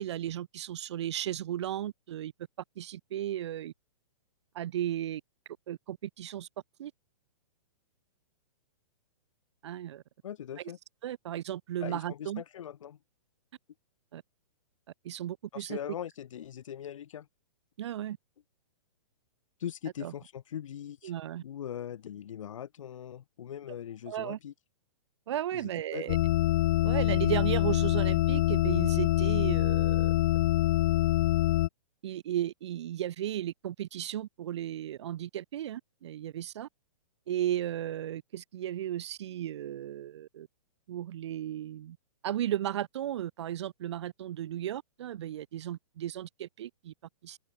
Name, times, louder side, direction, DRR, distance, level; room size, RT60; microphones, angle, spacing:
voice 1, 0.0-2.3 2.8-3.7 4.5-5.2 5.7-6.5 6.8-6.9 9.6-10.0 11.0-12.4 14.1-14.2 15.0-15.8 17.8-18.2 20.0-20.1 21.0-21.4 24.1-24.4 25.3-26.2 26.8-30.1 32.0-36.7 37.3-40.5 40.9-42.0 42.2-46.9 47.2-47.4, right 11 dB, 50° right, 2.8 m, -35 dB
voice 2, 10.2-10.8 11.8-13.0 15.5-17.3 19.6-21.1 21.4-24.5 25.5-26.2, left 10 dB, 60° left, 4.6 m, -41 dB
Shepard Note E, 26.1-31.7, left 15 dB, 30° left, 0.5 m, -25 dB
hypercardioid pair, 170°, 18 cm